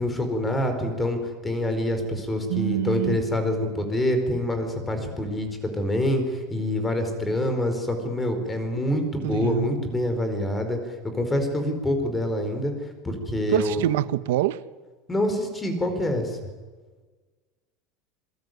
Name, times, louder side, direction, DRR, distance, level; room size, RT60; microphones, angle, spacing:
voice 1, 0.0-10.8 11.1-12.7 13.0-13.8 15.1-16.4, left 1 dB, 10° left, 7 dB, 4.7 m, -26 dB
voice 2, 2.5-3.2 9.2-9.7 13.5-14.6, right 16 dB, 90° right, 14 dB, 1.1 m, -25 dB
27.0 x 23.0 x 9.4 m, 1.4 s
supercardioid pair, 170°, 0 cm